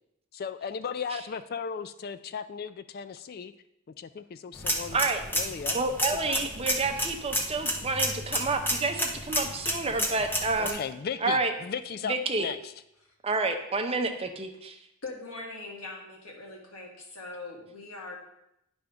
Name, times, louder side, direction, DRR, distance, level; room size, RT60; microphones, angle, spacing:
voice 1, 0.3-3.5 4.0-5.0 5.3-5.8 6.2-6.4 10.6-12.7, left 6 dB, 45° left, 12 dB, 0.3 m, -36 dB
sound 1, 4.5-10.7, equal, 10° left, 0.8 m, -31 dB
voice 2, 5.7-10.8 11.2-11.5 12.1-12.5 13.2-14.8, right 3 dB, 25° right, 4 dB, 0.7 m, -29 dB
Keyboard (musical), 7.8-11.3, left 3 dB, 10° right, 2.1 m, -48 dB
voice 3, 15.0-18.2, left 3 dB, 80° left, -1 dB, 1.8 m, -41 dB
9.9 x 3.5 x 5.2 m, 0.83 s
head